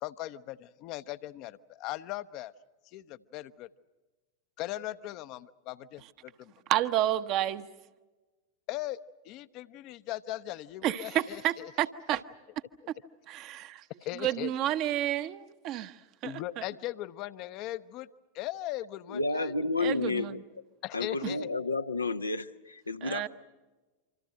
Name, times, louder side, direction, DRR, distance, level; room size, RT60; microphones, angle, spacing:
voice 1, 0.0-2.5 2.9-3.7 4.6-6.5 8.7-9.0 9.3-11.7 14.0-14.5 16.2-18.1 18.3-19.5 20.8-21.5, left 15 dB, 40° left, 14 dB, 0.8 m, -39 dB
voice 2, 6.7-7.7 10.8-12.2 13.3-13.8 14.2-15.9 16.2-16.6 19.8-20.3 21.2-21.3 23.0-23.3, right 13 dB, 40° right, 10 dB, 1.0 m, -30 dB
voice 3, 19.1-20.4 20.9-23.3, left 3 dB, 80° left, 9 dB, 0.8 m, -31 dB
27.0 x 25.5 x 6.5 m, 1.2 s
figure-of-eight pair, 90°, 0 cm